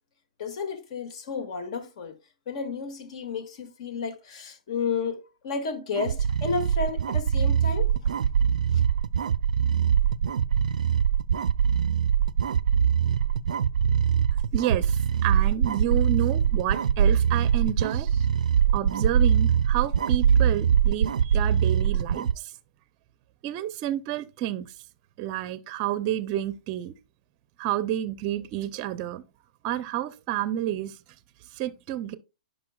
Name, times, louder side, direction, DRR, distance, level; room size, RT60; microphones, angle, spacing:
voice 1, 0.4-2.1 2.5-7.9, left 5 dB, 55° left, 1.9 m, -32 dB
sound 1, 6.0-22.4, right 8 dB, 85° right, 0.4 m, -23 dB
voice 2, 14.5-18.3 18.7-22.5 23.4-24.7 25.2-26.9 27.6-29.2 29.6-31.0 31.5-32.2, right 12 dB, 35° right, 0.5 m, -30 dB
10.5 x 5.2 x 2.3 m
hypercardioid pair, 145°, 4 cm